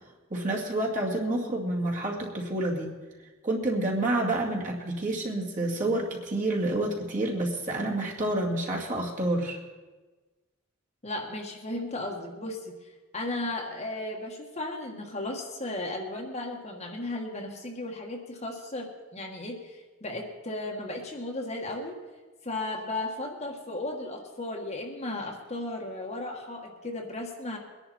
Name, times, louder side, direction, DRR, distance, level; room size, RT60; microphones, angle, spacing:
voice 1, 0.3-3.0 3.4-9.6, right 1 dB, 35° right, -2 dB, 2.4 m, -28 dB
voice 2, 11.0-12.7 13.1-21.9 22.4-27.6, left 2 dB, 30° left, 1 dB, 1.6 m, -35 dB
22.0 x 11.0 x 4.4 m, 1.3 s
head